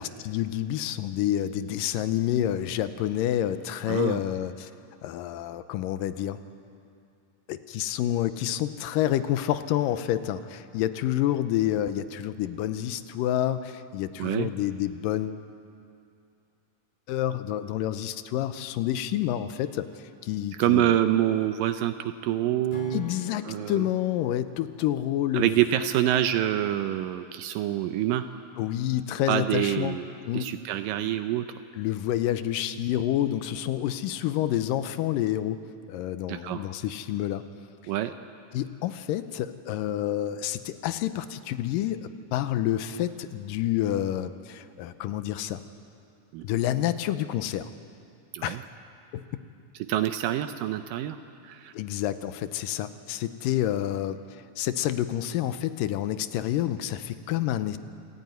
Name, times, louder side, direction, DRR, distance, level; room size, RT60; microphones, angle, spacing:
voice 1, 0.0-4.7 5.0-6.4 7.5-15.4 17.1-19.9 20.2-21.0 22.9-25.5 28.6-30.0 30.3-30.5 31.7-35.6 35.9-37.4 38.5-45.6 46.4-47.7 48.4-48.6 49.1-49.2 51.7-57.8, left 12 dB, 85° left, 12 dB, 2.4 m, -28 dB
voice 2, 3.9-4.2 14.2-14.5 20.6-23.0 23.5-23.9 25.3-28.3 29.3-31.5 36.3-36.6 37.9-38.1 46.3-46.5 48.3-48.6 49.9-51.2 51.4-51.7, right 12 dB, 80° right, 8 dB, 2.4 m, -26 dB
Acoustic guitar / Strum, 22.7-26.1, left 3 dB, 55° left, 2.8 m, -49 dB
26.5 x 14.5 x 9.3 m, 2.6 s
omnidirectional pair, 3.9 m